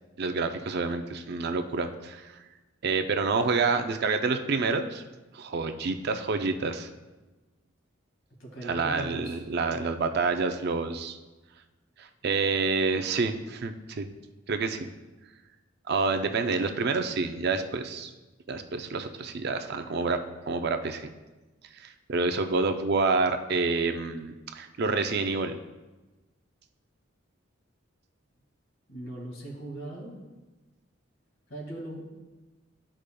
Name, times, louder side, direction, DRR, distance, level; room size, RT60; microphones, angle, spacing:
voice 1, 0.2-2.3 2.8-5.0 5.3-6.9 8.7-11.2 12.0-14.1 14.5-14.9 15.9-18.1 18.5-20.2 20.5-21.1 21.8-25.6, right 4 dB, 55° right, 7 dB, 0.4 m, -28 dB
voice 2, 8.4-9.4 28.9-30.2 31.5-32.0, right 1 dB, 70° left, -2 dB, 1.9 m, -39 dB
12.0 x 5.0 x 2.2 m, 1.2 s
head